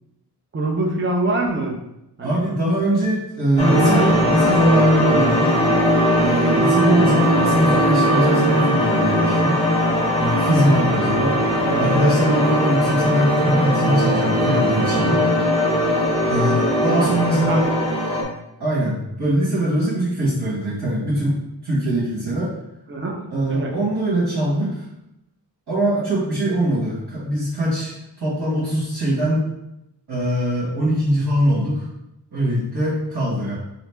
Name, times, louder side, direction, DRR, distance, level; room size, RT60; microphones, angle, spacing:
voice 1, 0.5-1.8 2.2-2.4 3.6-4.1 11.6-11.8 16.9-17.1 17.5-17.7 22.9-23.2 23.4-23.7, right 2 dB, 30° right, 1 dB, 0.6 m, -24 dB
voice 2, 2.2-5.5 6.2-9.6 10.2-11.4 11.8-15.2 16.3-17.6 18.6-21.4 21.6-22.5 23.3-24.8 25.7-29.4 30.1-31.9 32.3-33.5, right 1 dB, 70° right, -9 dB, 1.3 m, -21 dB
sound 1, 3.6-18.2, equal, 15° left, 0.8 m, -19 dB
4.1 x 2.8 x 3.3 m, 0.86 s
wide cardioid pair, 125°, 40 cm